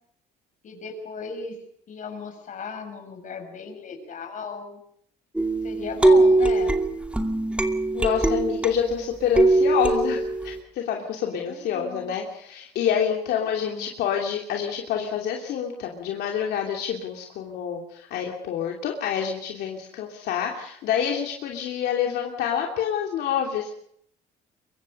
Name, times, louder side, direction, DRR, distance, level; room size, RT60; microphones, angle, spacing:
voice 1, 0.6-1.6 1.9-4.8 5.6-6.8 11.3-12.2 13.3-13.9, left 5 dB, 50° left, 5 dB, 6.5 m, -36 dB
sound 1, 5.4-8.9 9.4-10.6, right 2 dB, 5° right, 2.5 m, -21 dB
voice 2, 7.9-23.7, left 8 dB, 75° left, 1 dB, 2.9 m, -27 dB
24.0 x 22.5 x 5.5 m, 0.70 s
cardioid pair, 110°, 17 cm